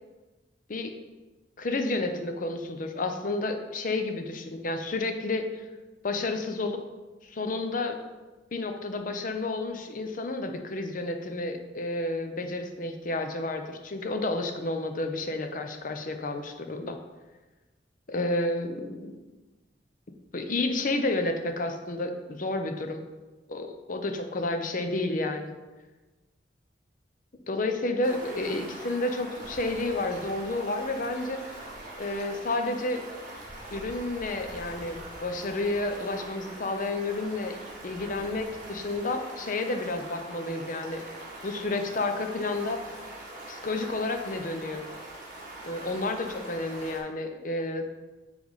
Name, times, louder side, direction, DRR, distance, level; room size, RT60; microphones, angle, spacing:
voice 1, 1.6-5.6 6.0-6.8 7.2-8.0 8.5-17.0 18.1-19.2 20.3-23.0 23.5-25.5 27.5-31.4 32.0-33.0 33.7-37.6 37.8-41.0 41.4-43.0 43.5-44.9 45.6-47.8, left 2 dB, 50° left, 6 dB, 0.7 m, -31 dB
Stream, 28.0-47.0, right 1 dB, 50° right, 2.0 m, -43 dB
9.5 x 3.4 x 4.0 m, 1.2 s
head